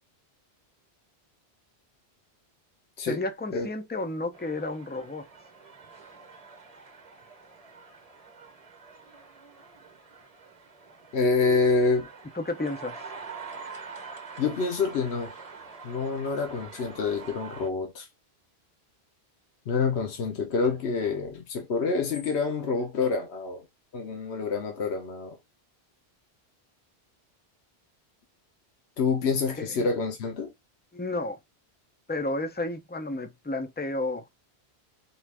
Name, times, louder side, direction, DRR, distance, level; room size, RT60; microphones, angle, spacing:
voice 1, 3.1-5.2 12.3-13.0 29.6-29.9 30.9-31.4 32.1-34.3, left 2 dB, 15° left, 0.3 m, -32 dB
sound 1, 4.3-17.7, right 4 dB, 35° right, 0.9 m, -45 dB
voice 2, 11.1-12.1 14.4-15.3 15.8-18.1 19.7-23.6 23.9-25.4 29.0-30.5, left 4 dB, 75° left, 1.1 m, -27 dB
4.4 x 2.5 x 3.3 m
omnidirectional pair, 1.1 m